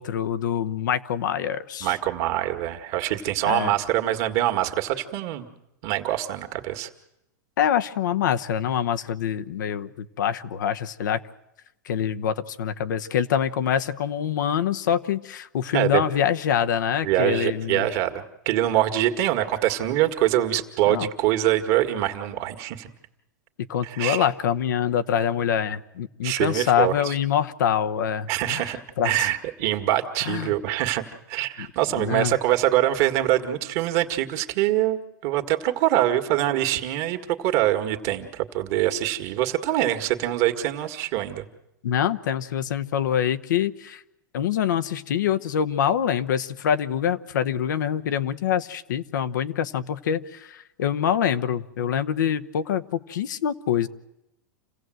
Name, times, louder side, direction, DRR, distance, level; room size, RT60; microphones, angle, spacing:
voice 1, 0.0-2.0 3.4-3.7 7.6-11.2 11.8-17.8 20.9-21.1 23.7-28.7 29.0-29.3 30.2-30.5 31.9-32.3 41.8-44.0 44.3-53.9, left 9 dB, 80° left, 10 dB, 1.0 m, -25 dB
voice 2, 1.8-5.5 5.8-6.9 15.7-16.0 17.0-22.9 23.8-24.3 26.2-27.1 28.3-28.8 29.0-31.0 31.3-41.5, right 13 dB, 50° right, 6 dB, 1.9 m, -24 dB
28.0 x 16.0 x 7.8 m, 0.89 s
hypercardioid pair, 125°, 10 cm